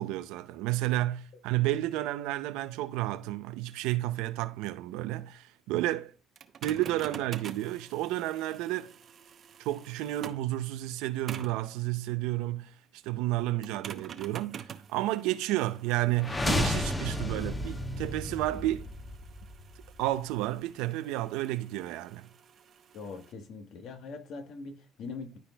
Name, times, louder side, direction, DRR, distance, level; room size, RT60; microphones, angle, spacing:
voice 1, 0.0-6.1 6.6-8.9 9.6-12.7 13.0-18.9 20.0-22.3, right 15 dB, 85° right, 0.6 m, -31 dB
sound 1, 6.4-10.5 11.3-11.7 13.6-23.3, right 8 dB, 50° right, 0.8 m, -48 dB
sound 2, 16.2-20.2, left 1 dB, 20° left, 1.0 m, -32 dB
voice 2, 22.9-25.4, left 4 dB, 65° left, 1.3 m, -42 dB
12.5 x 4.3 x 2.3 m
supercardioid pair, 80°, 0 cm